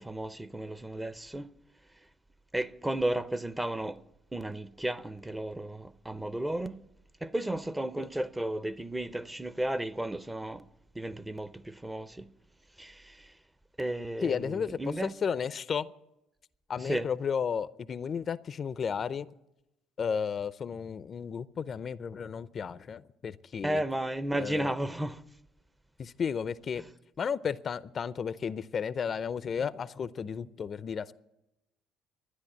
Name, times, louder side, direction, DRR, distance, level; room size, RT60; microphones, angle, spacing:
voice 1, 0.0-1.5 2.5-4.0 4.3-6.9 7.2-10.7 10.9-12.3 12.8-13.3 13.8-15.1 16.8-17.1 23.6-25.2 26.8-26.9, right 1 dB, 10° right, 0.8 m, -34 dB
voice 2, 14.2-15.9 16.7-19.3 20.0-23.8 24.4-24.8 26.0-26.8 27.2-31.1, left 6 dB, 45° left, 0.6 m, -33 dB
13.0 x 9.9 x 9.9 m
supercardioid pair, 75°, 0 cm